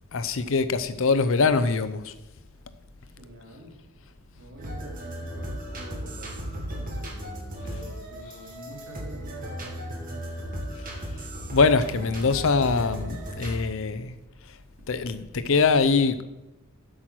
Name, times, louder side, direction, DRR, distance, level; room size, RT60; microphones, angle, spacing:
voice 1, 0.1-2.1 11.5-14.1 14.9-16.2, left 4 dB, 60° left, 0.6 m, -23 dB
voice 2, 3.0-3.8 4.4-7.3 7.6-10.5, right 1 dB, 60° right, 2.7 m, -46 dB
sound 1, 4.6-13.6, equal, 40° right, 1.8 m, -36 dB
8.2 x 6.2 x 6.1 m
head